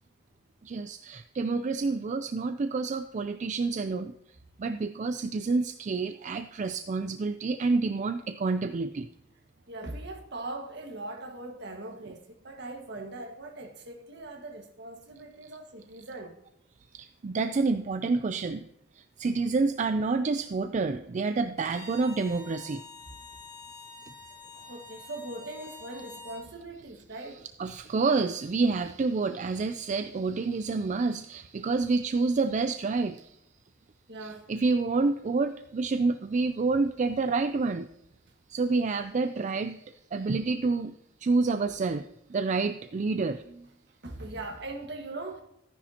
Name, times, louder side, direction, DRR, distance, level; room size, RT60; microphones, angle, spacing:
voice 1, 0.6-4.1 4.6-9.1 15.4-15.5 16.9-18.6 19.0-22.8 27.6-33.4 34.2-37.9 38.5-41.0 41.2-43.7, right 3 dB, 40° right, 9 dB, 0.4 m, -28 dB
voice 2, 9.7-16.4 24.5-27.4 34.1-34.5 44.0-45.4, right 2 dB, 65° right, 3 dB, 1.6 m, -40 dB
Bowed string instrument, 21.6-26.5, left 4 dB, 20° left, 2.4 m, -47 dB
13.5 x 10.0 x 2.8 m, 0.83 s
head